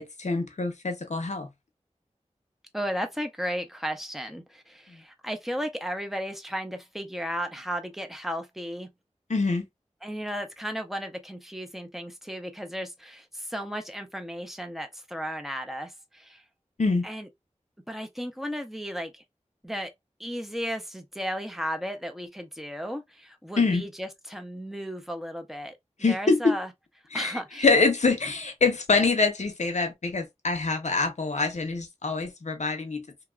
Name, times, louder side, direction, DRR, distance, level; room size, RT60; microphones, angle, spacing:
voice 1, 0.0-1.5 9.3-9.7 16.8-17.0 23.6-23.8 26.0-26.6 27.1-33.0, left 3 dB, 70° left, 0.7 m, -25 dB
voice 2, 2.7-8.9 10.0-16.4 17.0-17.3 17.9-19.2 19.6-19.9 20.2-25.8 26.1-26.7 27.1-27.7, equal, ahead, 0.7 m, -34 dB
3.0 x 2.3 x 2.3 m
wide cardioid pair, 65°, 12 cm